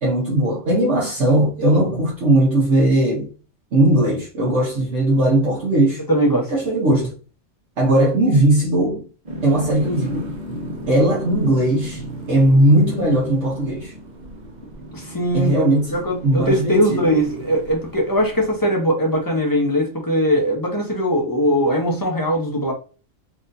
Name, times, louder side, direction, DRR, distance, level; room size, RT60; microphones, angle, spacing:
voice 1, 0.0-3.3 3.7-6.0 6.5-7.1 7.8-9.0 9.4-10.3 10.9-12.0 12.3-13.9 15.3-17.1, right 1 dB, 60° right, 1.3 m, -18 dB
voice 2, 6.1-6.5 14.9-15.6 15.9-22.7, equal, 20° left, 0.7 m, -20 dB
sound 1, 9.3-18.6, equal, 40° right, 0.7 m, -35 dB
4.1 x 2.5 x 2.6 m
omnidirectional pair, 1.4 m